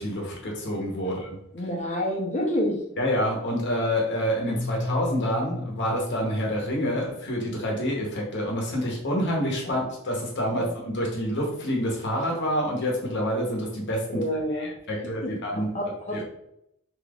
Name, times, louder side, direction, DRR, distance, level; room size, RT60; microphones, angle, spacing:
voice 1, 0.0-1.4 3.0-14.2 14.5-15.7 16.1-16.2, equal, 55° left, -1 dB, 1.0 m, -27 dB
voice 2, 1.5-2.8 10.5-10.7 14.1-14.7 15.0-16.2, equal, 35° left, -1 dB, 0.7 m, -29 dB
Keyboard (musical), 4.5-7.4, left 2 dB, 75° right, 1.0 m, -35 dB
3.5 x 2.9 x 2.4 m, 0.77 s
head